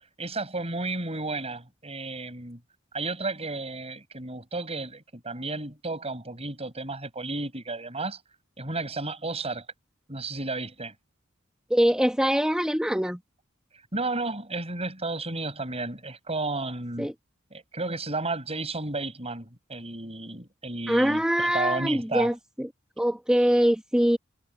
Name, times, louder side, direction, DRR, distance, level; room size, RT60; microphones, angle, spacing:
voice 1, 0.2-2.6 2.9-8.2 8.6-9.7 10.1-10.9 13.9-17.1 17.5-22.3, right 3 dB, 30° right, 7.7 m, -32 dB
voice 2, 11.7-13.2 17.0-17.1 20.9-22.7 23.0-24.2, equal, 5° right, 1.5 m, -23 dB
head